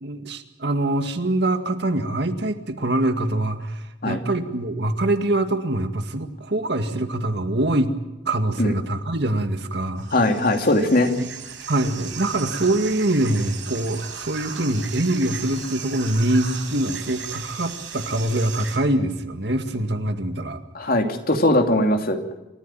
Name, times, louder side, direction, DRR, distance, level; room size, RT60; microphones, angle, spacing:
voice 1, 0.0-7.9 8.3-10.1 11.2-11.3 11.7-20.6, right 1 dB, 70° right, 7 dB, 2.1 m, -24 dB
sound 1, 10.0-18.8, right 7 dB, 85° right, 5.8 m, -36 dB
voice 2, 10.1-11.1 20.7-22.2, left 1 dB, 55° left, 4 dB, 2.8 m, -20 dB
28.0 x 14.5 x 8.9 m, 1.0 s
head